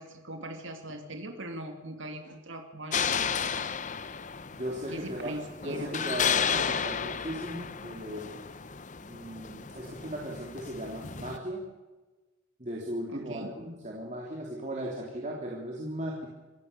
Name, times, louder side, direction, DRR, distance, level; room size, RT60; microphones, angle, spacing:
voice 1, 0.0-3.3 4.9-5.9 13.1-13.5, right 1 dB, 70° right, 4 dB, 2.7 m, -41 dB
sound 1, 2.9-11.4, left 7 dB, 35° left, 0.7 m, -33 dB
voice 2, 4.5-5.4 5.6-8.3 9.1-11.6 12.6-16.3, equal, 35° right, -2 dB, 3.1 m, -37 dB
25.5 x 16.0 x 6.8 m, 1.2 s
head